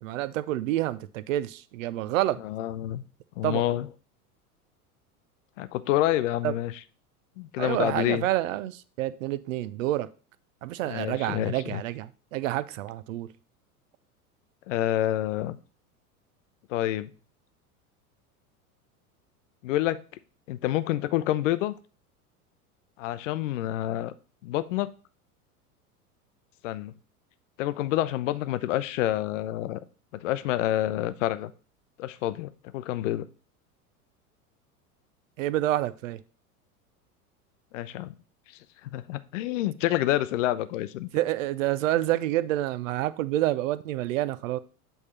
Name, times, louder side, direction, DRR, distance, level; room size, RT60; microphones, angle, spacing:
voice 1, 0.0-2.4 3.4-3.6 6.4-6.5 7.6-10.1 10.6-13.3 35.4-36.2 41.1-44.6, right 14 dB, 60° right, 0.6 m, -28 dB
voice 2, 2.4-3.0 3.4-3.9 5.6-6.8 7.4-8.3 10.8-11.8 14.7-15.6 16.7-17.1 19.6-20.0 20.5-21.7 23.0-24.1 24.4-24.9 26.6-26.9 27.6-29.8 30.1-31.5 32.0-33.3 37.7-38.1 38.8-41.1, left 14 dB, 55° left, 0.6 m, -28 dB
7.8 x 3.6 x 4.2 m
figure-of-eight pair, 85°, 45 cm